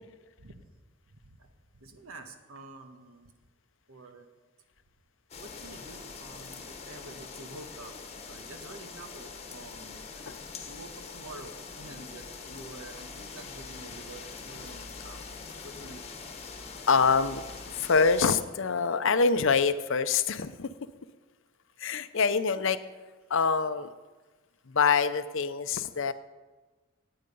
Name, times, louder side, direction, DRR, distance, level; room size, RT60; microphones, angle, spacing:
voice 1, 1.1-3.3 3.9-4.3 5.4-8.0 8.3-10.0 10.7-15.2 15.6-16.1, right 2 dB, 75° right, 7 dB, 1.4 m, -48 dB
sound 1, 5.3-18.4, left 4 dB, 30° left, 1.2 m, -43 dB
voice 2, 16.9-20.7 21.8-22.8 23.3-23.9 24.7-26.1, left 5 dB, 60° left, 12 dB, 0.6 m, -25 dB
17.5 x 8.8 x 5.4 m, 1.3 s
head